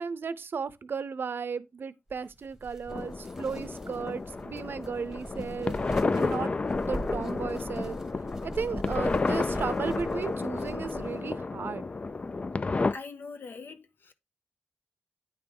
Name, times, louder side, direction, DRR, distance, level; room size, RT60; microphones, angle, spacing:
voice 1, 0.0-8.0 8.4-11.9, right 5 dB, 75° right, 0.6 m, -35 dB
sound 1, 2.1-11.4, right 1 dB, 10° right, 1.1 m, -43 dB
sound 2, 2.9-12.9, left 3 dB, 35° left, 0.3 m, -31 dB
voice 2, 12.9-14.1, left 4 dB, 70° left, 0.9 m, -42 dB
9.7 x 3.3 x 5.3 m
wide cardioid pair, 135°, 4 cm